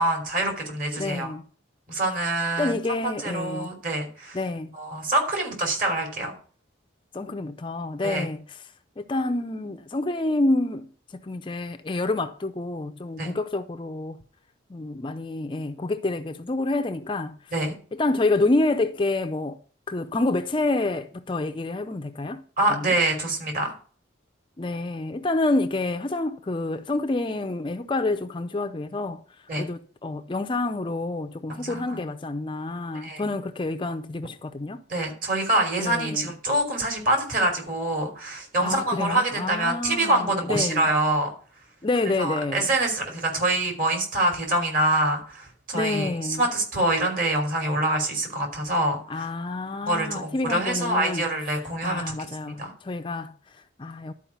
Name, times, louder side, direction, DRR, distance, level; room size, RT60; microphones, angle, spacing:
voice 1, 0.0-1.3 1.9-2.8 3.2-4.4 4.7-6.3 8.0-8.2 13.2-13.3 17.5-17.7 22.6-23.7 29.5-29.6 31.5-32.1 33.0-33.2 34.9-41.3 42.2-49.3 49.9-52.1 52.4-52.7, right 1 dB, 45° right, 3.2 m, -25 dB
voice 2, 1.0-1.4 2.6-3.7 4.3-4.8 7.1-8.6 9.0-14.2 14.7-17.4 17.9-19.6 19.9-22.4 22.7-22.9 24.6-29.2 29.6-34.8 35.8-36.3 38.6-40.9 41.8-42.6 45.7-46.4 49.1-51.2 51.8-54.1, left 2 dB, 25° left, 0.5 m, -28 dB
11.5 x 4.8 x 7.1 m
head